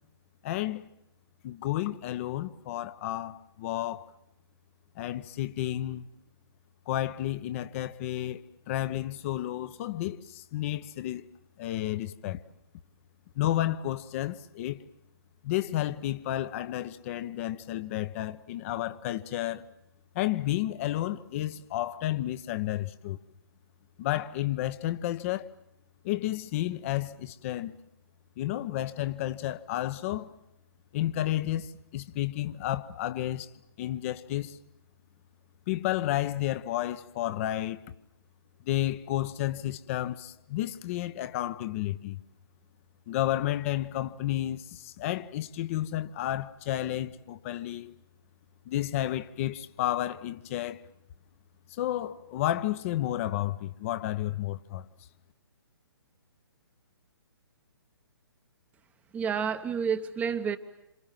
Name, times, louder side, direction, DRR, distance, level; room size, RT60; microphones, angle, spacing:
voice 1, 0.4-0.8 1.4-4.1 5.0-6.1 6.9-11.3 11.6-12.4 13.4-14.8 15.4-19.7 20.1-23.2 24.0-25.5 26.0-27.7 28.4-30.3 30.9-33.5 33.8-34.6 35.7-37.8 38.6-42.2 43.1-48.0 48.7-50.8 51.8-54.9, left 13 dB, 35° left, 0.9 m, -31 dB
voice 2, 59.1-60.6, right 7 dB, 10° right, 1.0 m, -29 dB
28.0 x 27.5 x 7.5 m
figure-of-eight pair, 130°, 13 cm